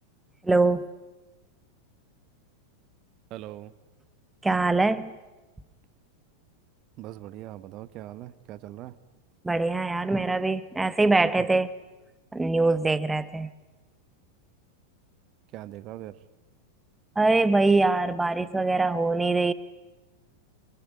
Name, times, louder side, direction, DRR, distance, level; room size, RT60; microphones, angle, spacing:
voice 1, 0.4-0.9 4.4-5.1 9.4-11.7 12.3-13.5 17.2-19.5, right 3 dB, 10° right, 1.1 m, -23 dB
voice 2, 3.3-3.7 7.0-9.0 15.5-16.2, right 14 dB, 40° right, 1.1 m, -41 dB
24.0 x 23.5 x 8.9 m
figure-of-eight pair, 90°, 0 cm